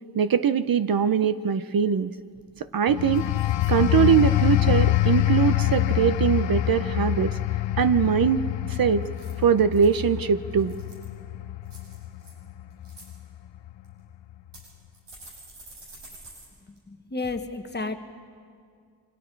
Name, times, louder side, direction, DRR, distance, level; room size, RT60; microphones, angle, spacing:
voice 1, 0.1-2.1 2.7-3.2 3.7-7.4 7.8-9.0 9.4-10.7, right 7 dB, 55° right, 12 dB, 0.6 m, -22 dB
sound 1, 2.3-2.7 3.1-3.7 4.2-4.5 9.0-10.0 10.5-11.2 11.7-12.3 12.7-13.1 13.8-13.9 14.5-16.5 16.8-16.9 17.2-17.3, right 2 dB, 75° right, 7.6 m, -48 dB
sound 2, 2.9-13.2 13.7-13.9, left 14 dB, 80° left, 0.7 m, -25 dB
voice 2, 16.7-18.0, left 3 dB, 25° left, 6 dB, 1.2 m, -32 dB
28.5 x 26.0 x 4.6 m, 2.2 s
wide cardioid pair, 160°, 43 cm